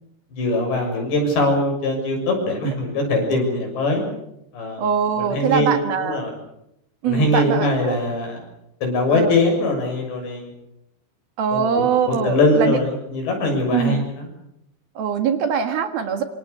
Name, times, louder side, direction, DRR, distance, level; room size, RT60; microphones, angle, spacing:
voice 1, 0.3-4.0 4.5-4.9 5.1-6.3 7.1-8.4 8.8-10.5 11.5-14.3, left 2 dB, 75° left, 2 dB, 9.0 m, -22 dB
voice 2, 4.8-6.2 7.0-8.0 9.1-9.3 11.4-12.8 13.7-14.0 15.0-16.2, right 7 dB, 65° right, 7 dB, 3.3 m, -22 dB
26.0 x 25.5 x 6.9 m, 0.81 s
omnidirectional pair, 5.0 m